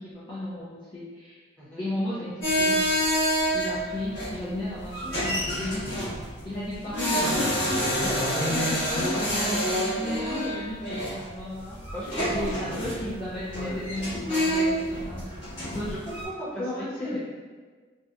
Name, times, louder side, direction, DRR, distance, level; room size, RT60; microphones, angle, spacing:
voice 1, 0.0-1.4 1.8-2.3 2.6-2.9 3.5-6.1 6.4-11.8 12.3-16.0 16.6-17.2, left 1 dB, 25° left, -10 dB, 0.3 m, -34 dB
sound 1, 2.4-16.2, equal, 75° left, 1.1 m, -28 dB
voice 2, 7.9-8.8 11.9-13.0 13.5-13.8 15.8-16.6 17.0-17.2, right 1 dB, 5° left, -10 dB, 0.7 m, -35 dB
2.7 x 2.1 x 2.3 m, 1.5 s
head